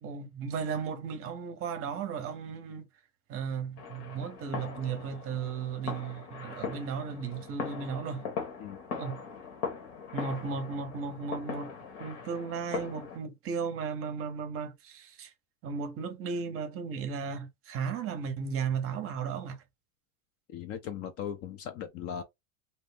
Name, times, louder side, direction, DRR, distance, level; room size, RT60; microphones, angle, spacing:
voice 1, 0.0-2.9 3.3-8.2 9.0-9.2 10.1-11.7 12.0-15.3 15.6-19.6, right 6 dB, 35° right, 0.7 m, -35 dB
sound 1, 3.8-13.2, left 6 dB, 70° left, 1.2 m, -40 dB
voice 2, 20.5-22.2, left 8 dB, 35° left, 0.4 m, -38 dB
2.7 x 2.0 x 3.3 m
supercardioid pair, 125°, 41 cm